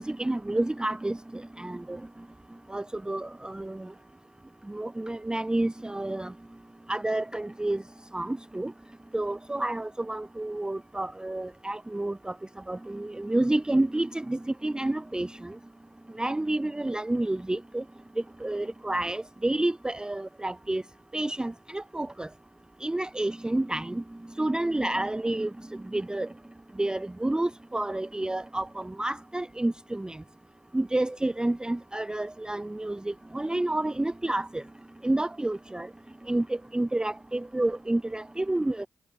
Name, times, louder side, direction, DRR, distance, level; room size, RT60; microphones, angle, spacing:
voice 1, 0.0-2.0 2.7-3.9 4.7-6.3 6.9-7.8 8.1-8.7 9.1-12.4 12.7-15.6 16.2-17.8 18.4-20.8 21.1-22.3 22.8-24.0 24.4-26.3 26.8-30.2 30.7-34.6 35.0-35.9 36.3-38.9, right 1 dB, 10° right, 0.3 m, -29 dB
cardioid pair, 50°, 7 cm